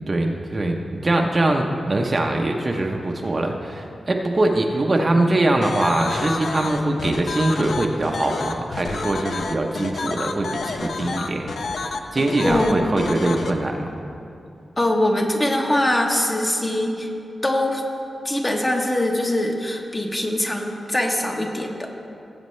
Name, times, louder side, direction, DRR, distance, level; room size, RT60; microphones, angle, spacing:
voice 1, 0.1-11.5 12.1-13.9, right 2 dB, 30° right, 2 dB, 0.7 m, -22 dB
sound 1, 5.6-13.5, left 4 dB, 65° left, 0.6 m, -29 dB
voice 2, 12.4-13.1 14.8-17.1 17.4-17.8 18.2-21.9, left 1 dB, 20° left, 1 dB, 1.0 m, -22 dB
18.0 x 8.1 x 3.2 m, 2.6 s
wide cardioid pair, 160°, 0 cm